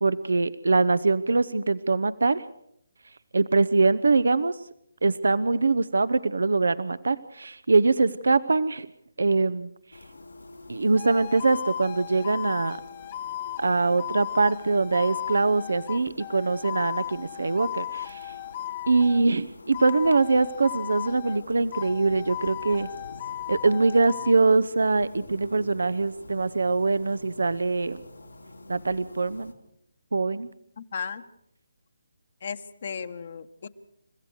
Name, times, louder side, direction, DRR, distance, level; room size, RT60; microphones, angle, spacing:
voice 1, 0.0-2.4 3.3-4.6 5.0-8.9 9.2-9.7 10.7-12.8 13.6-18.3 18.9-22.9 23.5-28.0 28.7-29.5 30.1-30.5, right 3 dB, 70° right, 16 dB, 0.8 m, -23 dB
sound 1, 9.9-29.5, left 2 dB, 90° left, 3.7 m, -47 dB
sound 2, 11.0-19.3 19.7-21.4 21.7-24.3, left 12 dB, 35° left, 0.9 m, -36 dB
voice 2, 30.8-31.2 32.4-33.7, left 6 dB, 50° left, 9 dB, 1.5 m, -35 dB
30.0 x 15.5 x 6.5 m, 0.75 s
figure-of-eight pair, 150°, 0 cm